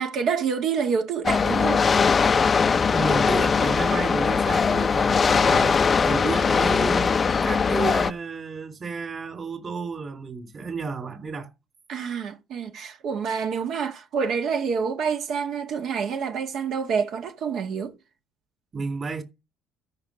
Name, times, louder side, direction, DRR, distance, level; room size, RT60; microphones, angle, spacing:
voice 1, 0.0-1.9 11.9-18.0, right 6 dB, 60° right, 1.6 m, -27 dB
sound 1, 1.2-8.1, left 5 dB, 30° left, 0.6 m, -21 dB
voice 2, 2.9-11.5 18.7-19.2, right 4 dB, 35° right, 3.3 m, -32 dB
13.5 x 5.8 x 6.3 m
cardioid pair, 115°, 0 cm